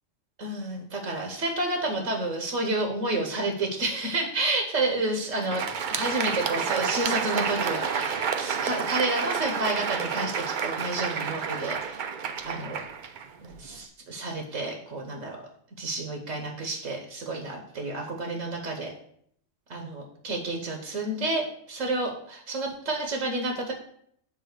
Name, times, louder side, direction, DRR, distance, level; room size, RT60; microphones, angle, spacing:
voice 1, 0.4-5.6 5.9-12.1 12.4-12.8 13.4-15.4 15.8-18.9 19.7-23.7, right 2 dB, 75° right, 2 dB, 1.5 m, -30 dB
Crowd, 5.3-13.8, right 6 dB, 55° right, 0.6 m, -30 dB
7.4 x 3.7 x 6.5 m, 0.67 s
omnidirectional pair, 1.3 m